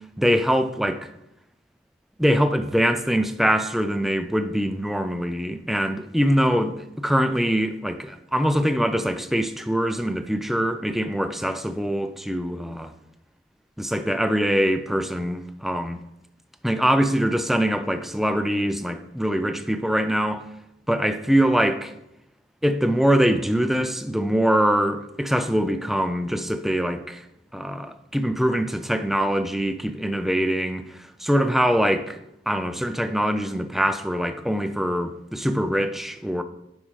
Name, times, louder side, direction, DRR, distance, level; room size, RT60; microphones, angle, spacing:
voice 1, 0.2-1.1 2.2-12.9 13.8-16.0 16.6-20.5 20.9-21.9 22.6-27.2 27.5-32.2 32.5-36.4, equal, ahead, 0.3 m, -23 dB
9.7 x 5.4 x 3.1 m
head